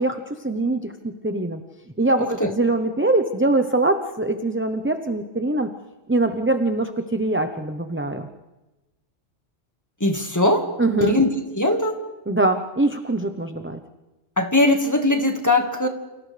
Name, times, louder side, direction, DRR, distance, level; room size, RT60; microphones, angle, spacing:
voice 1, 0.0-1.6 2.0-5.7 6.1-8.3 10.8-11.2 12.3-13.8, right 2 dB, 10° right, 6 dB, 0.8 m, -23 dB
voice 2, 10.0-10.7 11.0-11.3 11.5-12.0 14.4-15.9, left 1 dB, 15° left, 4 dB, 1.8 m, -20 dB
29.5 x 27.0 x 3.4 m, 1.1 s
omnidirectional pair, 1.2 m